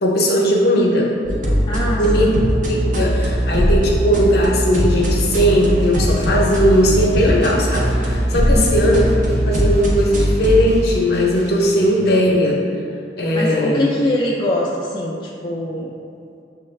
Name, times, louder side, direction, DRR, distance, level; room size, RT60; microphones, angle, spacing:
voice 1, 0.0-1.1 2.0-2.3 2.6-9.1 9.5-12.6 13.2-13.9, equal, 55° left, -2 dB, 0.7 m, -17 dB
sound 1, 1.2-10.7, equal, 45° right, 0.6 m, -19 dB
voice 2, 1.7-2.4 8.5-8.9 13.3-15.9, left 1 dB, 25° left, -5 dB, 0.3 m, -23 dB
sound 2, 4.9-12.3, right 1 dB, 20° right, 0.9 m, -37 dB
6.3 x 2.3 x 3.1 m, 2.5 s
head